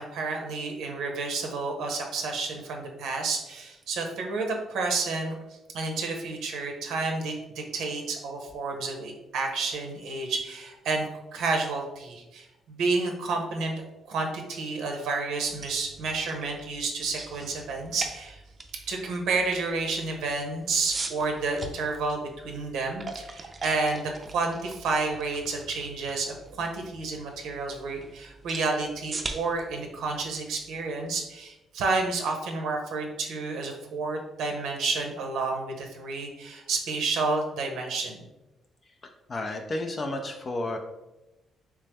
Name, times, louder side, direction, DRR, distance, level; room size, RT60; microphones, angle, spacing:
voice 1, 0.0-5.4 5.7-18.4 18.9-38.3, right 3 dB, 85° right, 3 dB, 0.6 m, -30 dB
sound 1, 15.4-31.3, right 3 dB, 35° right, 0.4 m, -42 dB
voice 2, 39.3-40.8, left 2 dB, 40° left, 4 dB, 0.4 m, -31 dB
3.2 x 3.1 x 3.4 m, 0.99 s
cardioid pair, 90°, 0 cm